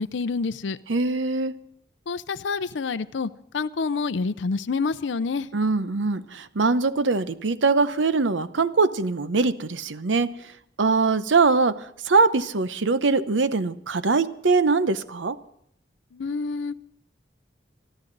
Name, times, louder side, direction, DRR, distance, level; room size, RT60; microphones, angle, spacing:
voice 1, 0.0-0.8 2.1-5.5 16.1-16.7, left 4 dB, 75° left, 0.5 m, -28 dB
voice 2, 0.9-1.5 5.5-10.3 10.8-15.4, right 4 dB, 85° right, 0.8 m, -22 dB
25.0 x 12.5 x 3.9 m
head